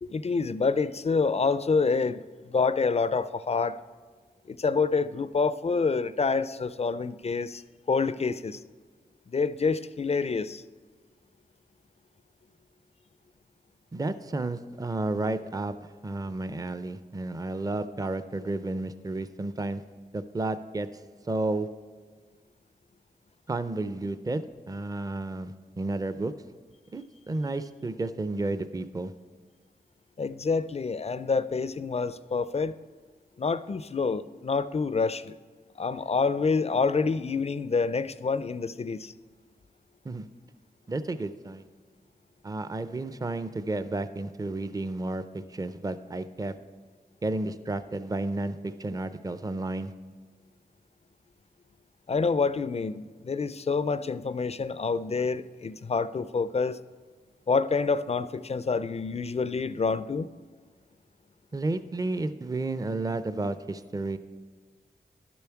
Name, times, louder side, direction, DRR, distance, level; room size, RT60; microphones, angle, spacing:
voice 1, 0.0-2.2 2.5-3.8 4.5-7.6 7.9-8.6 9.3-10.6 30.2-32.8 33.4-35.3 35.8-39.1 52.1-56.8 57.5-60.3, left 4 dB, 40° left, 14 dB, 0.4 m, -27 dB
voice 2, 13.9-19.8 20.1-20.9 21.3-21.7 23.5-26.3 26.9-29.1 40.0-40.3 40.9-41.7 42.4-46.5 47.2-49.9 61.5-64.2, right 2 dB, 20° right, 12 dB, 0.4 m, -32 dB
11.5 x 7.0 x 4.6 m, 1.5 s
wide cardioid pair, 75°, 17 cm